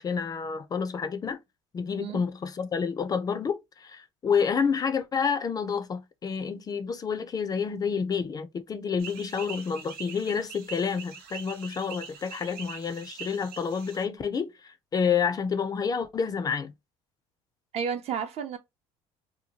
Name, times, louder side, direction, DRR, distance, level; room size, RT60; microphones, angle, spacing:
voice 1, 0.0-1.4 1.7-16.7, left 6 dB, 30° left, 0.4 m, -29 dB
sound 1, 9.0-14.0, right 6 dB, 85° right, 0.8 m, -43 dB
voice 2, 17.7-18.6, right 7 dB, 50° right, 0.6 m, -31 dB
2.8 x 2.2 x 2.7 m
supercardioid pair, 95°, 13 cm